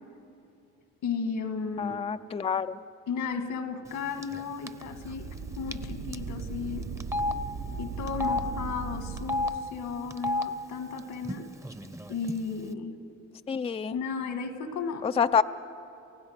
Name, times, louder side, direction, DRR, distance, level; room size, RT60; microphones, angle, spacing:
voice 1, 1.0-1.9 3.1-6.9 7.8-11.5 12.1-13.0 13.9-15.1, left 5 dB, 80° left, 7 dB, 2.0 m, -34 dB
voice 2, 1.8-2.8 13.5-14.0 15.0-15.4, left 6 dB, 20° left, 10 dB, 0.4 m, -27 dB
Telephone, 4.2-4.4 4.7-4.8 5.7-5.8 6.1-6.2 7.0-7.3 8.1-8.4 9.2-9.5 10.1-10.4 11.2-11.4 11.6-12.3, left 2 dB, 10° right, 0.8 m, -29 dB
Cinematic Rumble, 4.7-9.6, right 5 dB, 75° right, 1.4 m, -38 dB
29.0 x 16.0 x 6.6 m, 2.7 s
cardioid pair, 90°, 30 cm